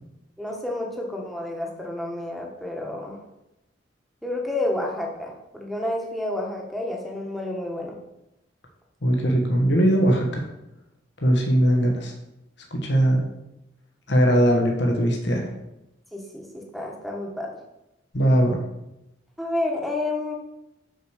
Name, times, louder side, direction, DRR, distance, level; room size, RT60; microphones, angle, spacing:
voice 1, 0.4-3.2 4.2-8.0 16.1-17.5 19.4-20.3, left 1 dB, ahead, -2 dB, 1.3 m, -30 dB
voice 2, 9.0-10.4 11.2-12.1 12.7-13.2 14.1-15.4 18.1-18.6, right 1 dB, 65° left, 1 dB, 1.4 m, -20 dB
6.3 x 4.8 x 6.6 m, 0.90 s
head